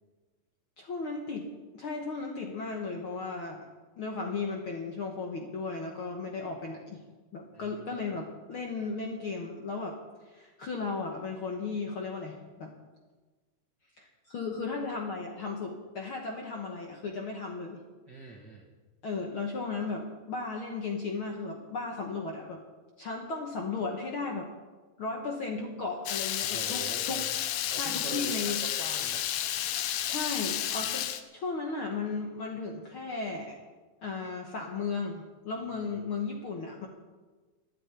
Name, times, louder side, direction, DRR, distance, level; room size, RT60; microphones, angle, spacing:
voice 1, 0.8-1.5 1.7-3.7 4.0-7.0 7.3-10.0 10.3-12.7 14.0-17.8 19.0-22.6 23.0-24.5 25.0-27.2 27.8-28.6 30.1-31.1 31.3-33.6 34.0-36.9, left 4 dB, 60° left, 1 dB, 1.4 m, -35 dB
voice 2, 7.5-8.1 18.1-18.6 26.4-27.3 27.7-29.3 35.7-35.8, right 3 dB, 55° right, 0 dB, 1.2 m, -44 dB
Water tap faucet / Liquid, 26.1-31.2, left 11 dB, 75° left, 2.2 m, -31 dB
12.5 x 8.5 x 9.7 m, 1.3 s
omnidirectional pair, 3.9 m